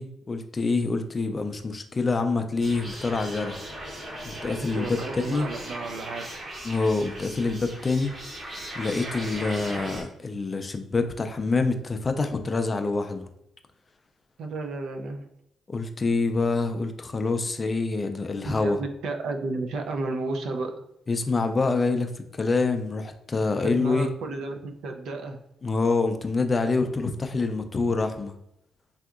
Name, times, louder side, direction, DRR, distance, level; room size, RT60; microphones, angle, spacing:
voice 1, 0.0-3.6 4.2-5.0 5.3-5.5 6.6-8.1 8.7-13.3 15.7-18.8 21.1-24.1 25.6-28.4, left 3 dB, 25° left, 6 dB, 0.3 m, -26 dB
sound 1, 2.6-10.0, right 1 dB, 40° right, 0.8 m, -38 dB
voice 2, 4.6-6.5 14.4-15.3 18.4-20.7 23.6-24.5 24.8-25.4, right 3 dB, 75° right, 4 dB, 0.4 m, -32 dB
3.4 x 2.7 x 2.4 m, 0.80 s
cardioid pair, 130°, 0 cm